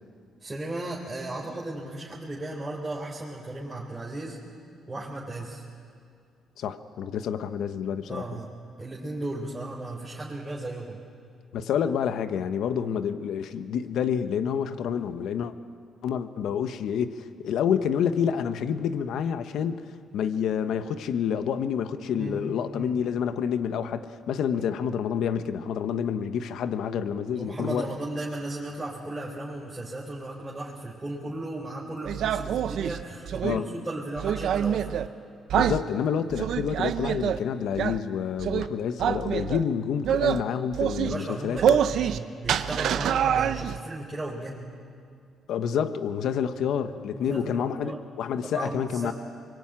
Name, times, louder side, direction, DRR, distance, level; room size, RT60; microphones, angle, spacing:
voice 1, 0.4-4.4 4.9-5.6 8.1-8.5 8.8-11.0 22.2-22.4 22.7-23.1 24.5-24.7 27.3-34.9 41.0-44.7 46.5-46.6 47.1-48.0 48.4-49.1, right 2 dB, 20° right, -4 dB, 4.2 m, -35 dB
voice 2, 6.6-8.3 11.5-15.5 16.0-19.8 20.1-27.9 33.4-33.7 35.5-41.8 45.5-49.1, left 8 dB, 75° left, 10 dB, 1.2 m, -28 dB
sound 1, 32.0-33.6 34.2-35.1 35.5-35.8 36.3-37.4 37.8-38.0 38.4-38.7 39.0-39.6 40.0-40.4 40.7-41.2 41.6-42.2 42.4-43.8, right 9 dB, 75° right, 0.9 m, -25 dB
24.5 x 22.5 x 8.9 m, 2.2 s
cardioid pair, 90°, 0 cm